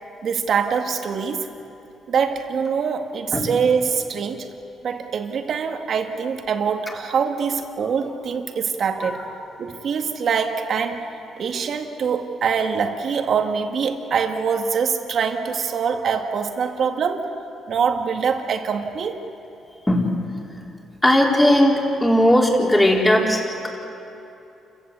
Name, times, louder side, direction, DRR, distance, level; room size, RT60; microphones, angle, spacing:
voice 1, 0.2-1.5 2.1-4.5 4.8-9.2 9.6-11.1 11.4-17.3 17.7-19.2, right 6 dB, 60° right, 4 dB, 2.0 m, -24 dB
voice 2, 9.0-9.3 19.9-20.0 21.0-23.7, left 1 dB, 15° left, -1 dB, 4.1 m, -18 dB
29.5 x 15.5 x 8.2 m, 2.9 s
cardioid pair, 90°, 0 cm